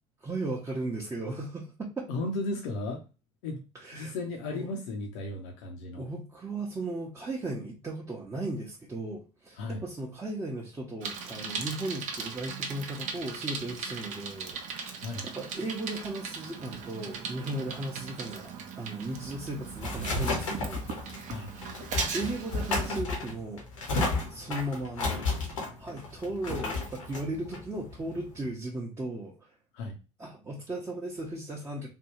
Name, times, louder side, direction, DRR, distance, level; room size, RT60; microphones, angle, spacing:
voice 1, 0.2-2.1 3.7-4.1 4.5-4.7 6.0-20.8 22.1-23.7 23.9-25.3 25.8-29.5 30.2-31.9, right 2 dB, 20° right, -3 dB, 0.8 m, -36 dB
voice 2, 2.1-3.0 3.4-3.6 3.9-6.1 9.6-9.8 15.0-15.3 21.3-21.5 29.7-30.0, left 2 dB, 65° left, 2 dB, 0.7 m, -35 dB
Bicycle, 11.0-23.0, right 5 dB, 50° right, 0.7 m, -38 dB
sound 1, 19.2-28.5, left 3 dB, 85° left, 1.0 m, -33 dB
3.4 x 2.3 x 2.9 m, 0.31 s
figure-of-eight pair, 65°, 16 cm